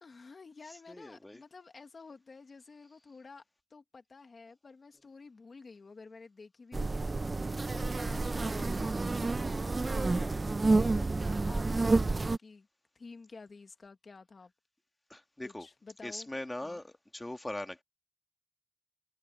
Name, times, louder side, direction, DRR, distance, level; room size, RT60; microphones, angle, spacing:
voice 1, 0.0-3.4 3.7-12.7 13.0-14.5 15.4-16.3 16.6-16.8, left 4 dB, 80° left, 1.9 m, -52 dB
voice 2, 0.7-1.4 7.4-7.7 10.9-11.3 15.1-15.7 16.0-17.8, left 1 dB, 25° left, 1.8 m, -42 dB
sound 1, 6.7-12.4, right 3 dB, 55° right, 0.6 m, -29 dB
cardioid pair, 45°, 0 cm